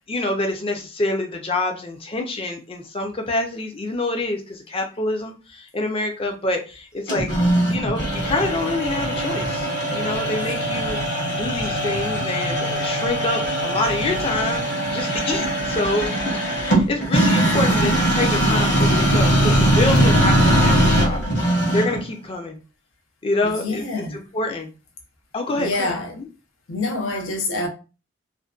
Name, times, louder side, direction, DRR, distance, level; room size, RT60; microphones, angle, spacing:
voice 1, 0.1-7.3 7.7-11.0 11.3-21.2 21.7-22.6 23.2-24.7 25.3-25.9 26.2-26.3, left 2 dB, 30° left, 0.4 m, -26 dB
sound 1, 7.1-22.1, right 1 dB, 60° left, 0.8 m, -21 dB
voice 2, 17.4-17.8 23.4-24.2 25.5-26.2 26.7-27.7, left 2 dB, 90° left, 0.6 m, -27 dB
2.5 x 2.1 x 2.3 m
head